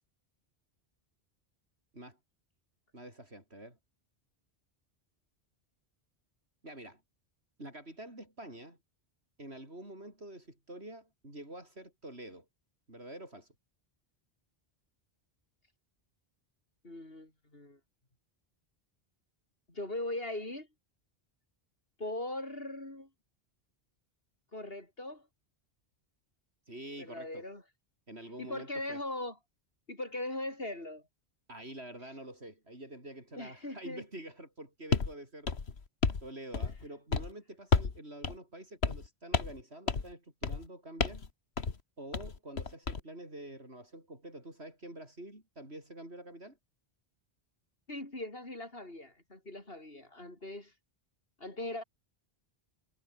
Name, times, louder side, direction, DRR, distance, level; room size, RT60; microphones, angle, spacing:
voice 1, 2.9-3.8 6.6-7.0 7.6-8.8 9.4-12.5 12.9-13.5 26.7-27.5 28.1-29.0 31.5-35.6 36.2-41.3 42.0-46.6, right 1 dB, 85° right, 8.5 m, -47 dB
voice 2, 16.8-17.8 19.7-20.7 22.0-23.1 24.5-25.3 27.0-27.6 28.4-29.3 29.9-31.0 33.4-34.0 47.9-50.7 51.4-51.8, left 1 dB, 65° left, 5.9 m, -40 dB
sound 1, 34.9-35.1 35.5-36.3 36.5-36.8 37.1-37.3 37.7-38.0 38.2-38.3 38.8-39.1 39.3-39.6 39.9-40.1 40.4-40.7 41.0-41.3 41.6-41.8 42.1-43.0, left 5 dB, 80° left, 2.0 m, -31 dB
omnidirectional pair, 1.1 m